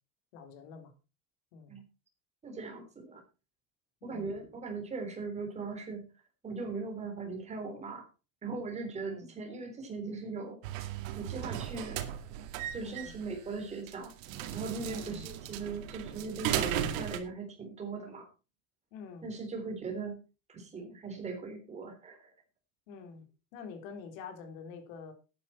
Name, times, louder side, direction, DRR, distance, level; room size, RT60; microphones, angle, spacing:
voice 1, 0.3-0.9 1.5-1.8 4.0-4.3 9.0-9.3 12.8-13.1 14.9-15.2 18.9-19.3 22.9-23.2 23.5-25.1, left 5 dB, 80° left, 3.7 m, -46 dB
voice 2, 2.4-3.2 4.0-6.0 6.4-8.1 8.4-10.6 11.2-12.0 12.7-14.1 14.5-18.3 19.2-20.2 20.5-22.3, right 4 dB, 15° right, 3.8 m, -39 dB
sound 1, 10.6-17.2, right 11 dB, 80° right, 2.3 m, -36 dB
14.0 x 9.8 x 4.3 m
cardioid pair, 170°, 39 cm